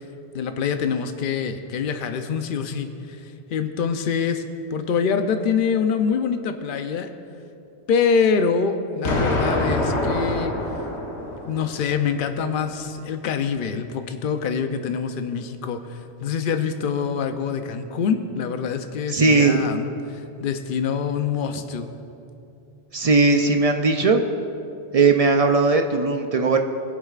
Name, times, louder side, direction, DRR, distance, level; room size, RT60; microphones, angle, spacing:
voice 1, 0.3-2.9 3.5-4.4 4.7-7.1 7.9-10.5 11.5-19.9 20.4-21.9, left 6 dB, 55° left, 7 dB, 0.8 m, -25 dB
Explosion, 9.0-12.0, left 1 dB, 85° left, 1.5 m, -25 dB
voice 2, 19.1-19.6 22.9-24.2 24.9-26.6, right 3 dB, 50° right, 5 dB, 0.4 m, -18 dB
21.5 x 8.0 x 2.4 m, 2.7 s
omnidirectional pair, 1.1 m